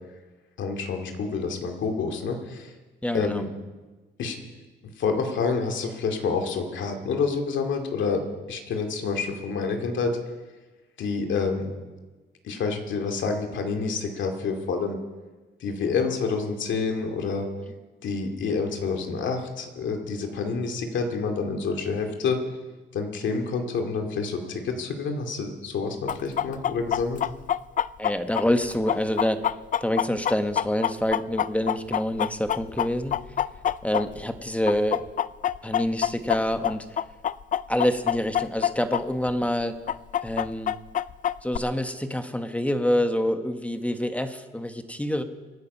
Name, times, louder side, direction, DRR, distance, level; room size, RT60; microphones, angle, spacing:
voice 1, 0.6-2.7 3.1-3.5 4.2-4.4 5.0-8.2 8.5-10.1 11.0-11.7 12.4-15.0 15.6-17.5 18.0-22.4 22.9-27.2, left 4 dB, 70° left, 4 dB, 2.5 m, -28 dB
voice 2, 3.0-3.4 28.0-29.5 29.8-33.2 33.8-35.0 35.6-36.8 37.7-39.8 40.2-40.7 41.4-45.2, left 1 dB, 5° left, 8 dB, 1.2 m, -26 dB
Chicken rooster, 26.1-34.4 34.7-39.0 39.3-39.4 39.9-41.6, left 10 dB, 40° left, 0.4 m, -26 dB
25.5 x 9.4 x 5.5 m, 1.3 s
cardioid pair, 90°, 20 cm